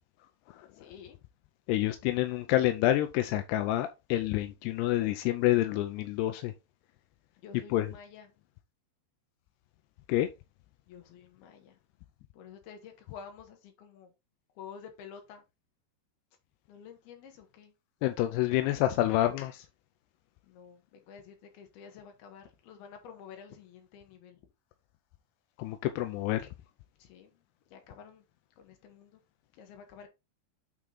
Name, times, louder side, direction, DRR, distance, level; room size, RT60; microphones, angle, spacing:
voice 1, 0.8-1.2 7.4-8.3 10.9-11.7 12.3-14.1 14.6-15.4 16.7-17.7 20.4-24.4 27.0-27.4 27.7-28.3 28.6-29.2 29.5-30.1, left 7 dB, 70° left, 3.3 m, -50 dB
voice 2, 1.7-6.5 7.7-7.9 10.1-10.3 18.0-19.6 25.6-26.4, left 14 dB, 85° left, 2.7 m, -28 dB
9.1 x 3.8 x 3.9 m
omnidirectional pair, 4.8 m